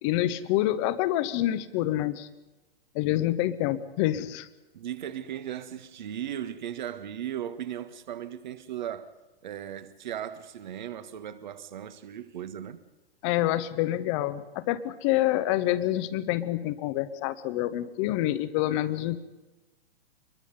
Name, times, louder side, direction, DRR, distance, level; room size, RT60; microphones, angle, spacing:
voice 1, 0.0-2.3 2.9-4.5 13.2-19.2, left 14 dB, 30° left, 1.2 m, -27 dB
voice 2, 4.7-9.1 9.4-12.8, right 10 dB, 50° right, 1.6 m, -37 dB
26.0 x 22.0 x 5.4 m
figure-of-eight pair, 110°, 29 cm